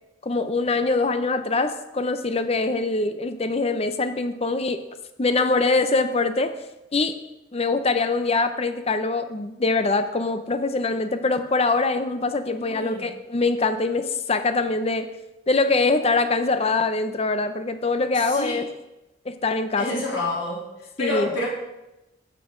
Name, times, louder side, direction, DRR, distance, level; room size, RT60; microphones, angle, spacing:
voice 1, 0.2-4.8 5.2-6.5 6.9-7.2 7.5-15.1 15.5-18.6 19.3-19.9 21.0-21.3, left 3 dB, 30° left, 10 dB, 0.6 m, -23 dB
voice 2, 12.5-13.1 18.1-18.6 19.8-20.6 21.0-21.5, left 2 dB, 90° left, -4 dB, 3.5 m, -28 dB
11.5 x 8.1 x 3.8 m, 0.96 s
head